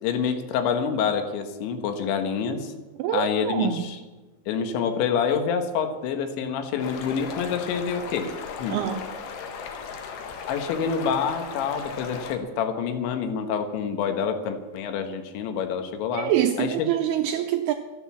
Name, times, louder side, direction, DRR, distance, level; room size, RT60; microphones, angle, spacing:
voice 1, 0.0-2.7 3.1-4.0 4.5-8.3 8.6-8.8 10.5-16.3 16.6-16.9, left 6 dB, 85° left, 6 dB, 3.6 m, -27 dB
voice 2, 3.0-3.8 8.7-9.0 16.1-17.7, right 11 dB, 80° right, 7 dB, 2.3 m, -25 dB
sound 1, 6.8-12.4, left 6 dB, 65° left, 3.1 m, -37 dB
12.5 x 11.5 x 7.2 m, 1.2 s
omnidirectional pair, 5.1 m